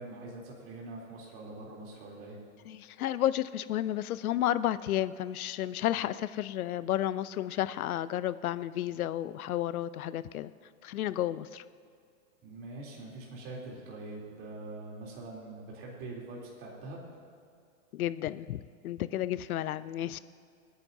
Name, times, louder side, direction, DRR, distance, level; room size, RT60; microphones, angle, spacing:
voice 1, 0.0-2.4 12.4-17.1, right 2 dB, 30° right, -3 dB, 3.2 m, -44 dB
voice 2, 2.7-10.5 10.8-11.6 17.9-20.2, left 12 dB, 80° left, 16 dB, 0.6 m, -32 dB
26.5 x 9.6 x 2.7 m, 2.3 s
hypercardioid pair, 140°, 43 cm